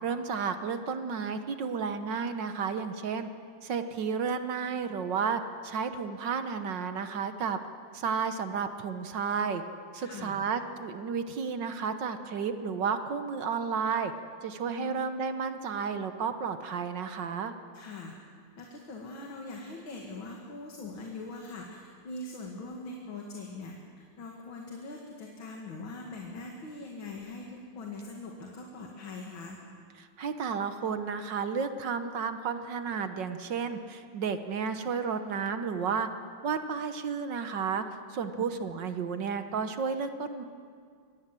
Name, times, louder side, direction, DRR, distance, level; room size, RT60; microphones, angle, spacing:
voice 1, 0.0-3.3 3.6-7.6 7.9-9.6 9.9-14.1 14.4-17.5 30.0-36.1 36.4-37.8 38.1-40.4, right 6 dB, 60° right, 9 dB, 1.6 m, -32 dB
voice 2, 10.0-10.4 14.7-15.1 17.7-18.1 18.6-29.6, left 3 dB, 70° left, 0 dB, 2.8 m, -42 dB
24.5 x 18.0 x 7.7 m, 2.1 s
omnidirectional pair, 2.3 m